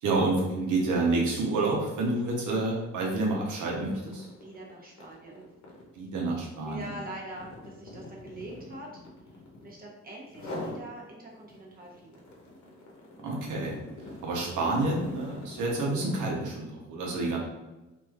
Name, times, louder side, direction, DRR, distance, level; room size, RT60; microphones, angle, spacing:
voice 1, 0.0-4.3 5.9-6.9 13.2-13.8 14.2-17.4, right 2 dB, 85° right, -2 dB, 0.9 m, -28 dB
sound 1, 0.8-1.0 1.4-9.8 10.3-10.9 11.3-16.5, left 1 dB, 70° left, 0.9 m, -44 dB
voice 2, 4.3-5.5 6.6-9.0 9.6-12.2, right 1 dB, 30° right, -2 dB, 0.9 m, -44 dB
3.1 x 2.6 x 2.4 m, 1.1 s
cardioid pair, 90°, 30 cm